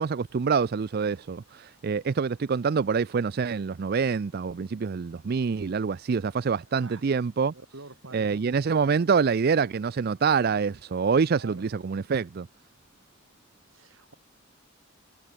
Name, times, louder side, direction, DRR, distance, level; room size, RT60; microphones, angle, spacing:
voice 1, 0.0-7.5 8.1-12.5, right 5 dB, 50° right, 0.4 m, -26 dB
voice 2, 6.7-7.1 7.5-8.5 11.3-11.7 13.7-14.1, right 2 dB, 70° right, 2.9 m, -47 dB
head